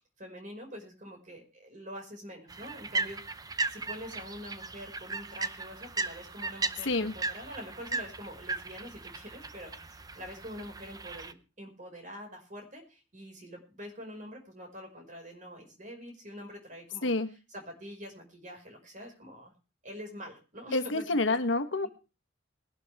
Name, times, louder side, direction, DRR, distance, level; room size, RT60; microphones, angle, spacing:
voice 1, 0.2-19.5 19.8-21.2, equal, 40° right, 3 dB, 5.4 m, -45 dB
sound 1, 2.5-11.3, right 3 dB, 20° right, 0.7 m, -37 dB
voice 2, 6.8-7.1 17.0-17.3 20.7-21.9, left 2 dB, 80° left, 9 dB, 1.2 m, -28 dB
21.0 x 12.0 x 3.5 m, 0.32 s
head